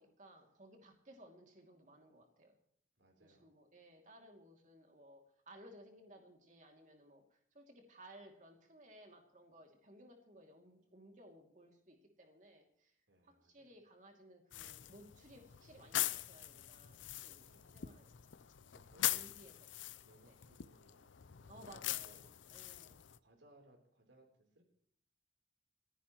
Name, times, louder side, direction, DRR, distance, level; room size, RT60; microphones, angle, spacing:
voice 1, 0.0-2.6 3.2-13.0 13.2-18.3 19.1-19.5 20.3-20.4 21.5-22.3 22.5-23.0, right 1 dB, 40° right, 2 dB, 2.6 m, -59 dB
voice 2, 3.0-3.6 13.1-13.7 17.3-17.8 18.7-19.6 20.0-21.5 22.0-22.2 22.5-22.7 23.2-24.6, right 1 dB, 80° right, 1 dB, 3.7 m, -67 dB
sound 1, 14.5-23.2, left 14 dB, 85° left, 0.6 m, -42 dB
28.5 x 10.0 x 3.1 m, 0.65 s
head